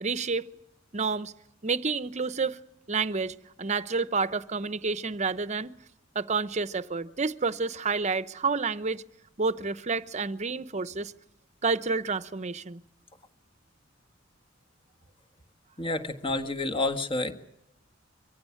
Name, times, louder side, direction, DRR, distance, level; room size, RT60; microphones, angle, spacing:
voice 1, 0.0-0.5 0.9-1.3 1.6-2.6 2.9-5.7 6.1-9.0 9.4-11.1 11.6-12.8, right 4 dB, 35° right, 0.8 m, -29 dB
voice 2, 15.8-17.3, left 2 dB, 25° left, 1.6 m, -29 dB
24.0 x 15.5 x 9.8 m
head